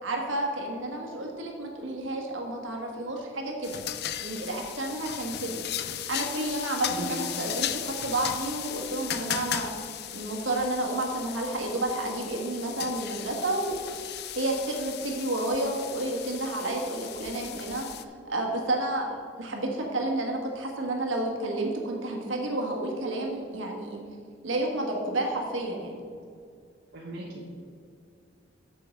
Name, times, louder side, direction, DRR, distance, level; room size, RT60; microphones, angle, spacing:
voice 1, 0.0-3.8 4.2-5.6 6.1-9.7 10.1-13.8 14.1-17.9 18.2-24.0 24.4-26.0, right 1 dB, 70° right, 1 dB, 1.5 m, -31 dB
sound 1, 3.6-18.0, left 11 dB, 55° left, 0.4 m, -36 dB
voice 2, 26.9-27.5, right 1 dB, 55° right, -4 dB, 1.1 m, -38 dB
7.6 x 7.1 x 5.2 m, 2.3 s
head